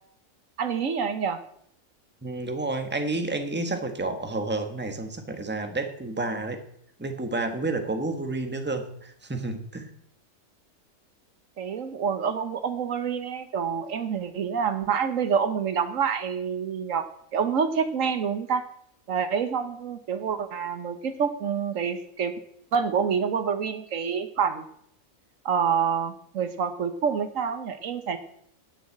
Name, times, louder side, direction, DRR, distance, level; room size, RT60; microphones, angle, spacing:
voice 1, 0.6-1.4 11.6-17.1 17.3-18.6 19.1-22.3 22.7-24.6 25.4-28.2, right 6 dB, 70° right, 10 dB, 1.3 m, -27 dB
voice 2, 2.2-6.6 7.0-9.9, right 2 dB, 10° right, 6 dB, 1.2 m, -30 dB
9.0 x 7.2 x 8.5 m, 0.68 s
omnidirectional pair, 1.4 m